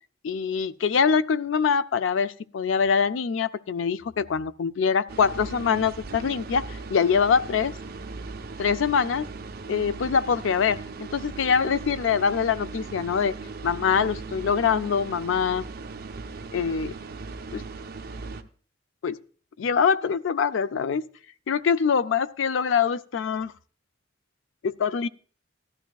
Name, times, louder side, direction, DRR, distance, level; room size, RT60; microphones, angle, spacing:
voice 1, 0.2-7.7 8.6-9.3 9.7-13.3 13.6-15.6 16.5-16.9 17.5-17.6 19.0-19.2 19.6-21.0 21.5-23.5 24.6-25.1, left 6 dB, 80° left, 0.4 m, -24 dB
sound 1, 5.1-18.4, right 4 dB, 50° right, 0.6 m, -38 dB
16.0 x 11.5 x 2.3 m
head